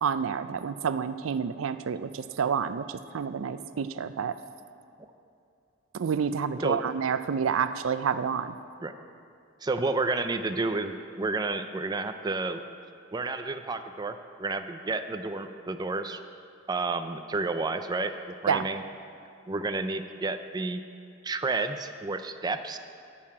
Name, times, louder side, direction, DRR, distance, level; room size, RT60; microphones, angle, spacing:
voice 1, 0.0-4.3 5.9-8.6 18.5-18.7, right 6 dB, 90° right, 12 dB, 0.4 m, -29 dB
voice 2, 9.6-12.6 13.1-16.2 16.7-18.1 18.4-18.8 19.5-20.8 21.2-22.8, right 3 dB, 20° right, 8 dB, 0.4 m, -30 dB
11.0 x 5.7 x 8.5 m, 2.5 s
head